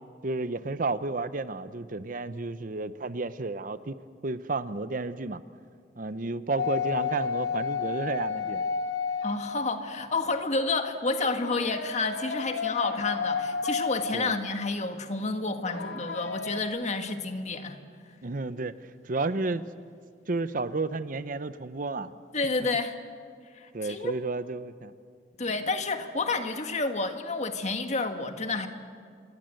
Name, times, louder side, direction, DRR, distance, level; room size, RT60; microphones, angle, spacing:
voice 1, 0.2-4.0 4.2-5.4 6.0-8.6 14.1-14.4 18.2-18.8 19.0-19.7 20.3-22.1 23.7-24.9, right 3 dB, 50° right, 13 dB, 0.8 m, -32 dB
sound 1, 6.6-10.0 11.2-14.7 15.6-16.6, left 5 dB, 80° left, 1.6 m, -32 dB
voice 2, 9.2-17.8 22.3-23.0 23.5-24.1 25.4-28.7, left 3 dB, 40° left, 6 dB, 1.7 m, -30 dB
27.0 x 23.0 x 7.9 m, 2.2 s
head